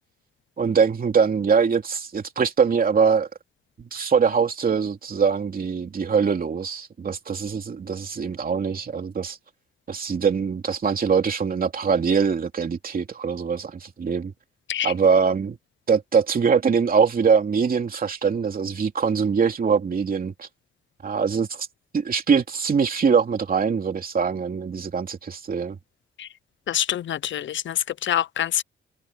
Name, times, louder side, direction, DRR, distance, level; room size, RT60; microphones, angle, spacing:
voice 1, 0.6-3.3 3.8-9.4 9.9-14.3 14.8-15.6 15.9-20.5 21.0-21.7 21.9-25.8, right 6 dB, 45° right, 3.0 m, -23 dB
voice 2, 26.7-28.6, left 11 dB, 70° left, 0.6 m, -26 dB
wide cardioid pair, 130°, 20 cm